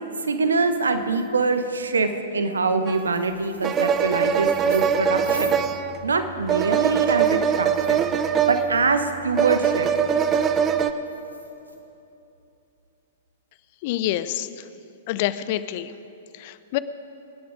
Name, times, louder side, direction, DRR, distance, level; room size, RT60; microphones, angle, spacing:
voice 1, 0.2-5.6 6.0-8.1 8.5-9.9, right 4 dB, 70° right, 8 dB, 1.1 m, -24 dB
sound 1, 0.6-1.8 2.5-6.3 6.9-9.5 10.7-11.8, right 1 dB, 90° right, 1.8 m, -42 dB
sound 2, 2.9-3.0 3.6-10.9, right 8 dB, 20° right, 0.7 m, -22 dB
voice 2, 13.8-14.6 15.1-15.9 16.3-16.8, left 13 dB, 45° left, 15 dB, 0.6 m, -27 dB
24.5 x 10.5 x 5.1 m, 2.8 s
figure-of-eight pair, 105°, 0 cm